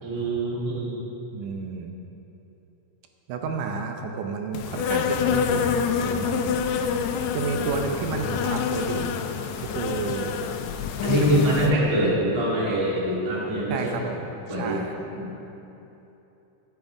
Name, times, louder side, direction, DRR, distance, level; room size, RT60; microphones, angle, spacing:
voice 1, 0.0-1.0 11.0-13.9 14.5-14.8 15.1-15.3, right 1 dB, 15° right, -6 dB, 1.2 m, -24 dB
voice 2, 1.3-2.0 3.3-6.5 7.3-9.1 9.6-10.4 11.1-11.7 13.7-15.0, right 5 dB, 80° right, 4 dB, 2.2 m, -31 dB
Insect, 4.5-11.7, left 7 dB, 85° left, 1.6 m, -27 dB
10.5 x 9.0 x 4.8 m, 3.0 s
omnidirectional pair, 3.7 m